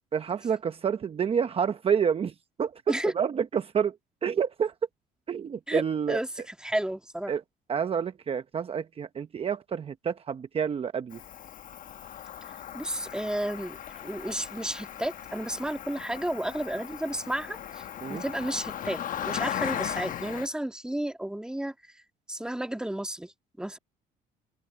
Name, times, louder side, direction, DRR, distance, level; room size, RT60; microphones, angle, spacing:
voice 1, 0.1-2.8 3.1-4.0 4.2-4.7 5.3-6.2 7.3-7.4 7.7-11.2 18.0-18.2, right 7 dB, 35° right, 0.9 m, -28 dB
voice 2, 6.1-7.3 12.7-17.8 18.1-21.7 22.3-23.3 23.6-23.8, right 1 dB, 5° right, 1.9 m, -32 dB
Cricket, 11.1-20.5, left 10 dB, 55° left, 1.2 m, -37 dB
cardioid pair, 110°, 17 cm